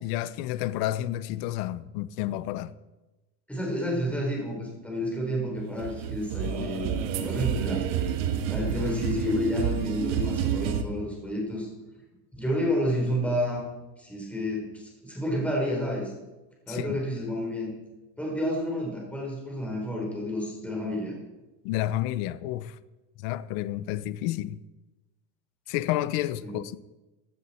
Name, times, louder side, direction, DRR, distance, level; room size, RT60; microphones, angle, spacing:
voice 1, 0.0-2.7 6.4-6.7 16.7-17.0 21.6-22.8 23.2-24.6 25.7-26.8, left 14 dB, 50° left, 0.7 m, -30 dB
voice 2, 3.5-7.8 8.5-11.7 12.3-13.6 14.0-16.1 16.7-17.7 18.2-21.2 26.4-26.6, equal, 5° left, 4.2 m, -30 dB
sound 1, 5.7-10.8, right 9 dB, 65° right, 1.6 m, -29 dB
16.0 x 9.9 x 4.4 m
supercardioid pair, 145°, 47 cm